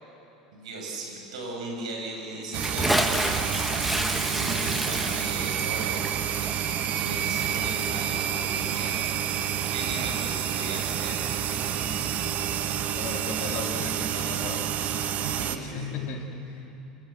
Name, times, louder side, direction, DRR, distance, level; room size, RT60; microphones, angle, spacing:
voice 1, 0.5-4.1 4.3-6.0 6.9-9.0 9.6-11.2 15.2-16.0, right 2 dB, 70° right, 1 dB, 7.6 m, -37 dB
sound 1, 2.5-15.6, right 9 dB, 40° right, 1.5 m, -29 dB
Bathtub (filling or washing) / Splash splatter, 2.6-9.2, equal, ahead, 2.2 m, -30 dB
voice 2, 11.6-14.7 15.6-16.7, left 5 dB, 50° left, 3 dB, 2.7 m, -38 dB
29.0 x 26.0 x 7.5 m, 3.0 s
figure-of-eight pair, 75°, 4 cm